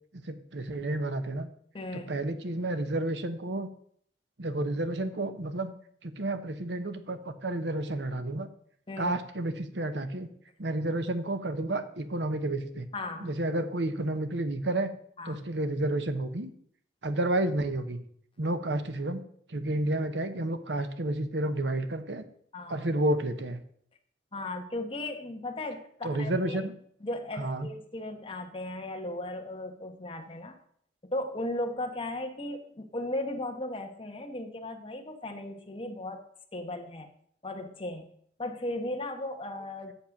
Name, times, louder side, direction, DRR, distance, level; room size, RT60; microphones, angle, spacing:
voice 1, 0.1-1.5 1.9-3.7 4.4-5.7 6.0-8.5 9.0-10.3 10.6-12.9 13.2-14.9 15.3-16.5 17.0-18.0 18.4-19.2 19.5-22.2 22.7-23.6 26.0-26.7 27.4-27.7, right 1 dB, 80° right, 10 dB, 1.0 m, -31 dB
voice 2, 1.7-2.1 8.9-9.1 12.9-13.3 15.2-15.4 22.5-22.8 24.3-26.6 27.0-30.5 31.0-36.2 36.5-37.1 37.4-38.1 38.4-39.9, left 1 dB, 30° left, 4 dB, 1.2 m, -36 dB
8.2 x 6.7 x 5.9 m, 0.63 s
head